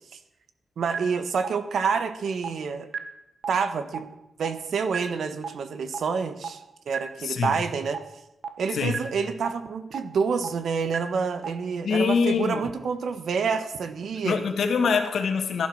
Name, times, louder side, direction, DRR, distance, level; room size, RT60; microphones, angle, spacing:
voice 1, 0.8-2.9 3.5-4.1 4.4-8.0 8.6-14.4, right 5 dB, 75° right, 10 dB, 1.4 m, -28 dB
sound 1, 0.9-1.0 1.4-1.5 1.9-2.0 2.4-2.5 2.9-3.0 3.4-3.5 3.9-4.0 4.4-4.5 4.9-5.0 5.4-5.5 5.9-6.0 6.4-6.5 6.9-7.0 7.4-7.5 7.9-8.0 8.4-8.5 8.9-9.0 9.4-9.5 9.9-10.0 10.4-10.5 10.9-11.0 11.4-11.5, right 6 dB, 60° right, 1.5 m, -30 dB
voice 2, 7.2-7.5 8.7-9.0 11.8-12.6 14.2-15.7, left 5 dB, 75° left, 6 dB, 2.0 m, -24 dB
16.0 x 11.0 x 6.5 m, 0.89 s
wide cardioid pair, 170°, 0 cm